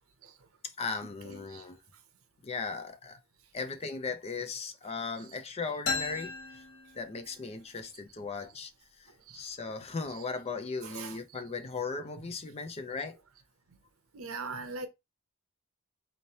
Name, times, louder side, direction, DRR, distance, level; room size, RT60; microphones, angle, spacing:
voice 1, 0.6-1.8 2.4-3.2 3.5-6.6 6.9-8.7 9.0-13.2, left 4 dB, 30° left, 0.5 m, -37 dB
voice 2, 1.2-1.7 5.3-5.4 8.4-8.5 9.1-9.4 10.1-10.2 10.8-11.4 12.2-12.3 13.7-13.8 14.1-14.9, right 4 dB, 75° right, 0.7 m, -43 dB
sound 1, 5.9-7.6, left 4 dB, 85° left, 1.3 m, -36 dB
4.1 x 3.1 x 2.8 m
head